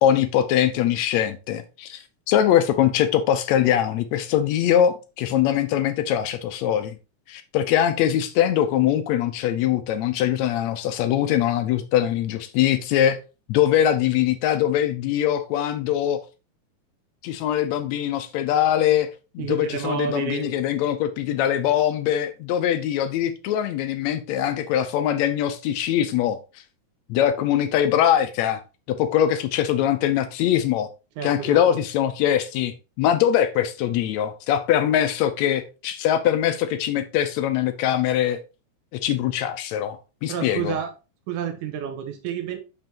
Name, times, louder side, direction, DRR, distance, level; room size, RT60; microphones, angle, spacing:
voice 1, 0.0-7.0 7.3-13.2 13.5-16.2 17.2-19.1 19.4-26.4 27.1-28.6 28.9-30.9 31.2-38.4 38.9-40.0 40.2-40.8, left 10 dB, 75° left, 1.7 m, -22 dB
voice 2, 19.4-20.5 31.2-31.6 40.3-40.9 41.3-42.6, right 8 dB, 90° right, 2.3 m, -29 dB
6.0 x 5.4 x 2.9 m
omnidirectional pair, 3.5 m